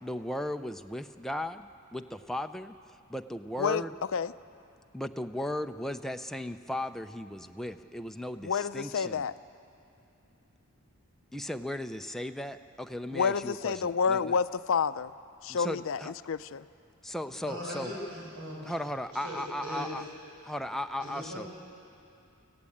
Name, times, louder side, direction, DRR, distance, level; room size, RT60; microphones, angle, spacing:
voice 1, 0.0-3.9 4.9-9.3 11.3-14.4 15.5-16.1 17.0-17.9 18.6-20.0 20.4-21.5, left 1 dB, ahead, 6 dB, 0.5 m, -36 dB
voice 2, 8.4-9.3 13.1-15.1 15.4-16.0 16.3-16.6, left 6 dB, 65° left, 14 dB, 0.5 m, -29 dB
voice 3, 17.4-18.7 19.1-20.0 21.0-21.5, equal, 75° right, -4 dB, 6.0 m, -39 dB
25.0 x 15.5 x 8.5 m, 2.6 s
head